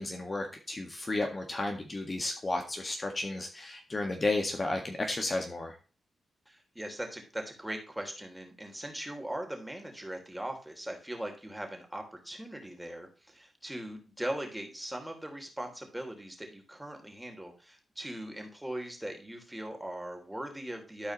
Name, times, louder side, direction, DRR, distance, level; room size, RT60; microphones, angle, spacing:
voice 1, 0.0-5.7, left 2 dB, 35° left, 3 dB, 1.7 m, -33 dB
voice 2, 6.5-21.1, right 1 dB, 10° right, 3 dB, 3.1 m, -40 dB
13.5 x 4.7 x 3.1 m, 0.35 s
cardioid pair, 70°, 0 cm